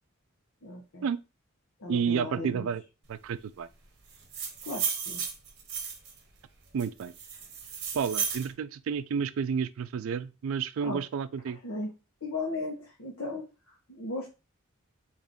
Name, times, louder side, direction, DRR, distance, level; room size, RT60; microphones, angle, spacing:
voice 1, 0.6-1.0 1.8-2.7 4.6-5.2 10.8-11.0 11.6-11.9 12.2-13.5 13.9-14.3, left 2 dB, 75° left, 0.9 m, -36 dB
voice 2, 1.9-2.8 3.1-3.7 6.7-7.1 7.9-11.6, right 6 dB, 70° right, 0.3 m, -30 dB
sound 1, 4.1-6.2 6.8-8.5, right 6 dB, 50° right, 0.9 m, -34 dB
3.4 x 2.6 x 3.7 m
head